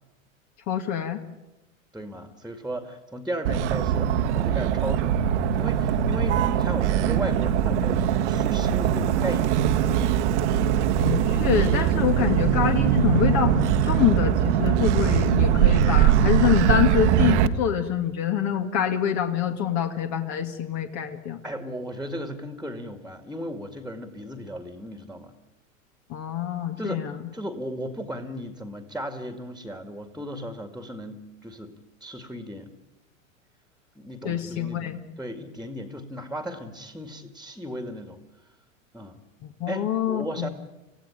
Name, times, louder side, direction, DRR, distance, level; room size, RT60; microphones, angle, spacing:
voice 1, 0.7-1.2 11.0-21.4 26.1-27.2 34.2-35.0 39.4-40.5, left 9 dB, 40° left, 5 dB, 2.3 m, -25 dB
voice 2, 1.9-5.2 5.6-10.1 21.4-25.3 26.8-31.7 32.0-32.7 34.0-34.9 35.2-38.2 38.9-39.2 39.7-40.5, equal, ahead, 7 dB, 2.2 m, -35 dB
Motor vehicle (road), 3.5-17.5, right 9 dB, 55° right, 1.6 m, -22 dB
29.5 x 16.0 x 9.2 m, 1.0 s
hypercardioid pair, 100°, 41 cm